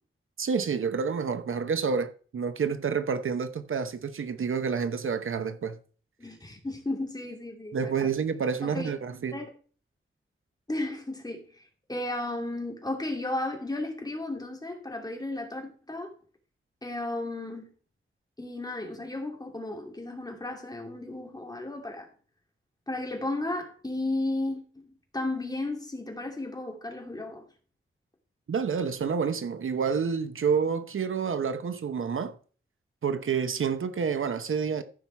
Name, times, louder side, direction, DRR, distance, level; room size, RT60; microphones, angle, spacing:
voice 1, 0.4-5.8 7.7-9.4 28.5-32.4 33.0-34.8, right 6 dB, 75° right, 0.9 m, -29 dB
voice 2, 6.2-8.1 8.6-8.9 9.3-9.5 10.7-11.5 11.9-16.1 16.8-17.7 18.4-22.1 22.9-27.4, left 2 dB, 20° left, 2.8 m, -34 dB
14.5 x 5.7 x 4.6 m
wide cardioid pair, 120°, 21 cm